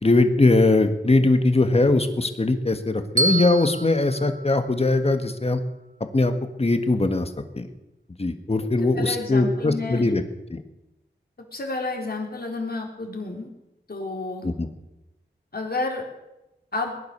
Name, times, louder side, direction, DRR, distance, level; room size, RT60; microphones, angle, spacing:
voice 1, 0.0-5.6 6.1-6.3 6.6-7.3 7.5-7.7 8.2-10.2 10.5-10.6 14.4-14.7, left 2 dB, 35° left, 8 dB, 1.6 m, -20 dB
Bell, 3.2-5.4, right 2 dB, 45° right, 1.5 m, -28 dB
voice 2, 9.0-10.1 11.5-13.5 13.9-14.5 15.5-16.0 16.7-16.9, left 3 dB, 55° left, 2 dB, 3.7 m, -30 dB
20.0 x 10.5 x 6.7 m, 0.94 s
wide cardioid pair, 70°, 19 cm